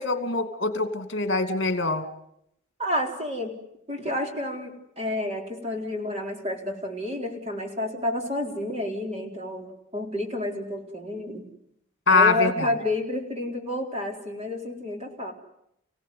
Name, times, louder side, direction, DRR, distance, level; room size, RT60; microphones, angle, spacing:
voice 1, 0.0-2.1 12.1-12.7, left 3 dB, 65° left, 8 dB, 2.6 m, -23 dB
voice 2, 2.8-3.5 3.9-11.4 12.1-15.3, left 1 dB, 30° right, 2 dB, 4.1 m, -30 dB
30.0 x 17.0 x 9.5 m, 0.78 s
head